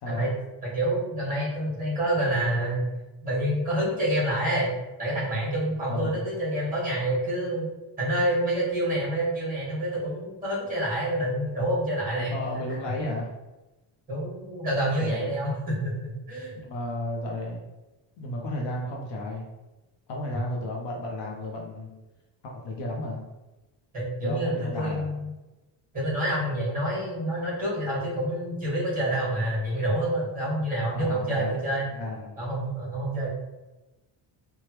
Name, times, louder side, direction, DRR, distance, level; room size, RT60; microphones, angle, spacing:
voice 1, 0.0-0.3 5.9-6.3 12.2-13.3 15.0-15.5 16.5-17.6 18.2-19.4 20.1-21.9 22.4-23.2 24.2-25.1 30.9-31.6 32.0-32.4, left 1 dB, 60° left, -1 dB, 0.6 m, -33 dB
voice 2, 0.6-2.8 3.2-4.7 5.0-7.7 8.0-12.3 14.1-16.6 23.9-25.3 25.9-31.8 32.4-33.3, right 1 dB, 15° right, -7 dB, 1.3 m, -27 dB
3.2 x 2.3 x 2.9 m, 1.1 s
cardioid pair, 180°, 49 cm